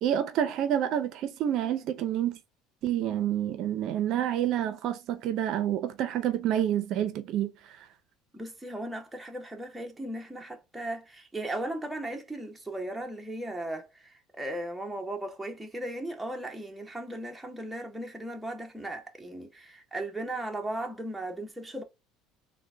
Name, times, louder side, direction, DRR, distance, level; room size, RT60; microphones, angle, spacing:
voice 1, 0.0-2.4 2.8-7.5, right 10 dB, 60° right, 0.5 m, -28 dB
voice 2, 8.3-21.8, right 1 dB, 5° right, 0.7 m, -37 dB
3.7 x 2.1 x 3.2 m
cardioid pair, 125°, 0 cm